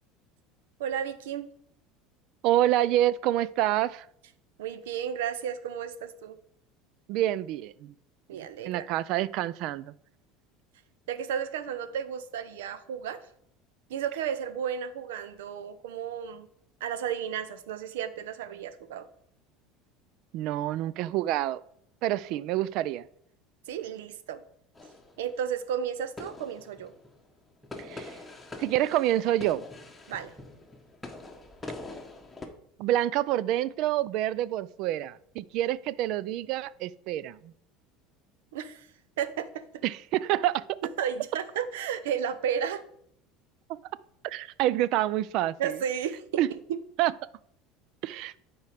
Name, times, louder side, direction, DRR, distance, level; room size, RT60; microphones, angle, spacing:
voice 1, 0.8-1.5 4.6-6.4 8.3-8.9 11.1-13.2 13.9-16.5 16.8-19.1 23.7-24.4 25.2-26.9 30.1-30.3 38.5-38.9 39.2-39.6 41.0-42.8 45.6-46.2 46.5-46.6, right 8 dB, 90° right, 0.8 m, -33 dB
voice 2, 2.4-4.0 7.1-7.9 8.7-9.9 20.3-21.6 22.0-23.0 27.8-28.1 28.6-29.6 32.8-37.5 39.8-40.6 44.2-45.8 46.4-46.5 47.0-47.1 48.0-48.3, right 13 dB, 65° right, 0.4 m, -27 dB
sound 1, 24.8-25.6 26.2-27.2 27.6-32.5, left 2 dB, 10° left, 1.5 m, -44 dB
11.5 x 4.6 x 5.0 m
supercardioid pair, 105°, 0 cm